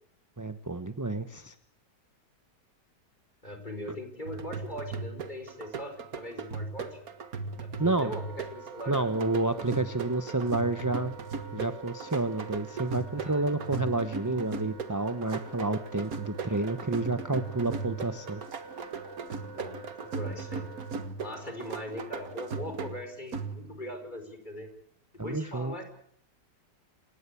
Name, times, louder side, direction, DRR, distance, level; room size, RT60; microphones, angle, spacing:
voice 1, 0.4-1.5 7.8-8.1 8.9-11.2 11.5-18.4 25.2-25.7, right 2 dB, 15° right, 11 dB, 0.7 m, -30 dB
voice 2, 3.4-7.0 7.6-8.2 8.5-9.1 13.2-13.8 19.5-19.9 20.1-20.6 21.2-24.7 25.2-25.8, left 1 dB, 25° left, 6 dB, 5.3 m, -40 dB
sound 1, 4.3-23.9, right 4 dB, 55° right, 2.0 m, -38 dB
Wind instrument woodwind instrument, 7.8-21.1, right 6 dB, 80° right, 2.9 m, -48 dB
28.0 x 18.0 x 8.4 m, 0.67 s
omnidirectional pair, 1.9 m